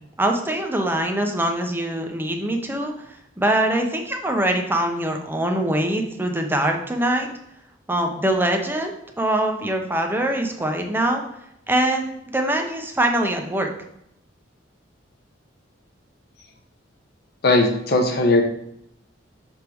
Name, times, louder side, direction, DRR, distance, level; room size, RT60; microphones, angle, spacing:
voice 1, 0.2-2.9 3.4-7.3 7.9-11.2 11.7-13.7, right 1 dB, 10° right, 3 dB, 0.7 m, -23 dB
voice 2, 17.4-18.4, left 2 dB, 55° left, 3 dB, 0.8 m, -18 dB
6.4 x 3.6 x 4.6 m, 0.77 s
head